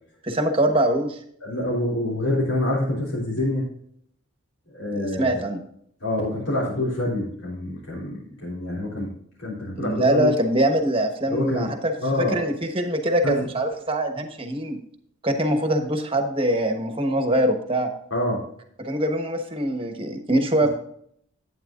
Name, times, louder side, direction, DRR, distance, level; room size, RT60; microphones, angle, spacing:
voice 1, 0.2-1.2 4.9-5.6 9.8-14.8 15.2-17.9 18.8-20.7, right 1 dB, 25° right, 6 dB, 1.1 m, -23 dB
voice 2, 1.4-3.7 4.7-5.4 6.0-9.1 9.4-10.3 11.3-12.5 13.2-13.5 18.1-18.4 20.6-20.7, left 1 dB, 85° left, -6 dB, 3.5 m, -26 dB
11.5 x 9.1 x 2.5 m, 0.67 s
head